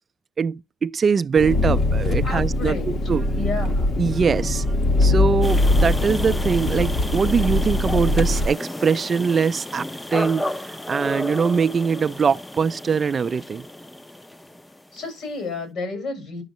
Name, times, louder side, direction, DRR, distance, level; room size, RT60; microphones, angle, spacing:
voice 1, 0.4-3.3 4.0-4.7 5.0-10.5 10.9-13.7, right 6 dB, 40° right, 0.4 m, -22 dB
Engine, 1.4-8.5, left 2 dB, 55° left, 1.2 m, -21 dB
voice 2, 2.2-3.0 3.3-3.9 14.9-16.4, left 3 dB, 75° left, 6.7 m, -31 dB
sound 1, 5.4-15.1, left 1 dB, 10° left, 0.6 m, -32 dB
11.5 x 6.4 x 3.0 m
cardioid pair, 90°, 0 cm